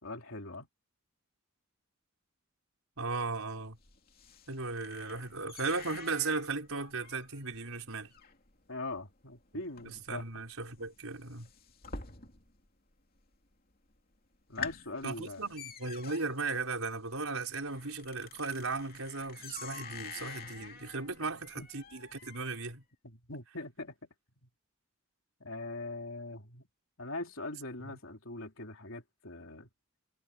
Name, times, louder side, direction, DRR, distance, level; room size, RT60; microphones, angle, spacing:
voice 1, 0.0-0.7 8.7-10.2 14.5-15.5 21.6-21.7 23.0-24.1 24.4-24.5 25.4-26.7 27.0-29.7, left 2 dB, 75° left, 3.3 m, -42 dB
voice 2, 3.0-3.8 4.5-8.1 9.5-9.6 10.1-11.5 15.0-22.8, right 3 dB, 85° right, 4.5 m, -36 dB
sound 1, 3.1-12.7 12.9-13.5 13.9-14.0 14.3-22.7, left 6 dB, 45° left, 2.9 m, -48 dB
head